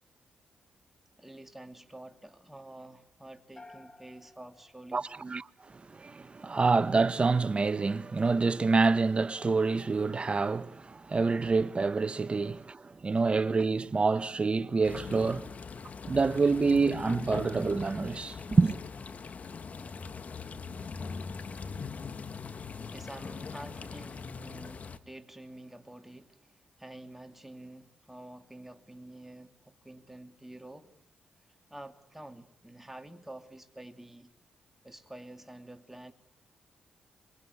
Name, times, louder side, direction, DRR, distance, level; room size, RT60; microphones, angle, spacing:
voice 1, 1.2-5.1 12.2-12.3 22.8-26.5 26.8-30.9 31.7-34.3 34.8-36.1, right 1 dB, 10° right, 3.0 m, -48 dB
sound 1, 3.6-5.8, left 2 dB, 25° left, 4.1 m, -55 dB
voice 2, 4.9-5.4 5.7-15.5 16.1-18.8, right 4 dB, 35° right, 1.0 m, -27 dB
sound 2, 14.8-25.0, left 5 dB, 50° left, 1.5 m, -41 dB
25.5 x 22.0 x 9.8 m
cardioid pair, 60°, 3 cm